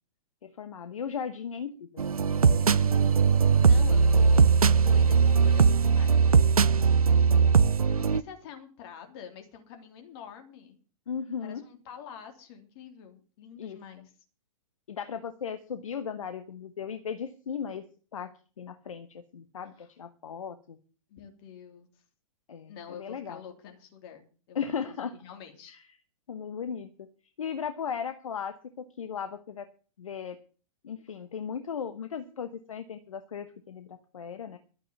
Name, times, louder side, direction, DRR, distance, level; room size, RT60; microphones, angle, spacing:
voice 1, 0.4-2.0 2.6-2.9 11.1-11.6 13.6-13.8 14.9-17.8 18.1-18.3 18.6-20.8 22.5-23.4 24.5-25.1 25.7-25.8 26.3-27.1 27.4-29.7 30.0-30.4 30.8-34.6, left 7 dB, 70° left, 10 dB, 1.2 m, -37 dB
sound 1, 2.0-8.2, right 5 dB, 85° right, 0.5 m, -20 dB
voice 2, 3.6-4.5 4.8-7.1 7.8-10.8 11.4-14.1 19.8-19.9 21.1-21.9 22.7-24.6 24.9-25.8, left 7 dB, 45° left, 5 dB, 3.4 m, -47 dB
12.5 x 9.0 x 7.1 m, 0.38 s
figure-of-eight pair, 105°, 18 cm